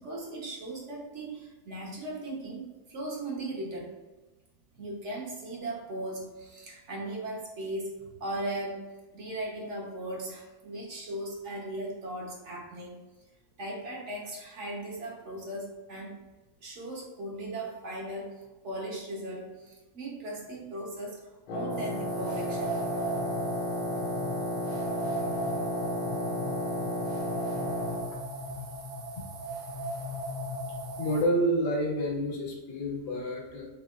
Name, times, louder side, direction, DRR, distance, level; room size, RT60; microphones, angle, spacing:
voice 1, 0.0-3.9 4.8-8.8 9.1-13.0 13.6-16.2 16.6-18.4 18.6-22.7, right 1 dB, 45° right, -2 dB, 1.0 m, -38 dB
Wind instrument woodwind instrument, 21.5-28.1, left 1 dB, 90° left, 1.5 m, -33 dB
sound 1, 21.7-31.2, right 1 dB, 80° right, 1.5 m, -36 dB
voice 2, 31.0-33.7, equal, 60° left, -3 dB, 1.6 m, -29 dB
6.5 x 2.9 x 2.4 m, 1.2 s
omnidirectional pair, 2.1 m